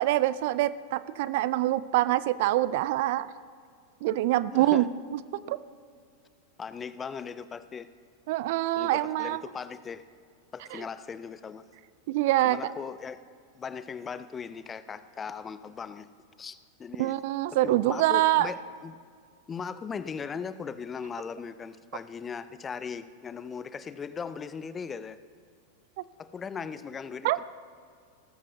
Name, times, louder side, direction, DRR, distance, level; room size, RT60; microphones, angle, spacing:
voice 1, 0.0-3.3 4.0-5.2 5.5-5.6 8.3-9.4 10.7-10.8 12.1-12.6 17.0-18.5 27.2-27.4, right 15 dB, 50° right, 17 dB, 0.3 m, -25 dB
voice 2, 4.5-4.9 6.6-7.9 8.8-10.0 10.5-11.6 12.4-13.2 13.5-16.1 16.4-17.1 17.6-18.6 18.8-19.0 19.5-25.2 26.2-27.4, left 6 dB, 20° left, 14 dB, 0.5 m, -38 dB
18.0 x 13.5 x 2.7 m, 2.1 s
figure-of-eight pair, 90°, 0 cm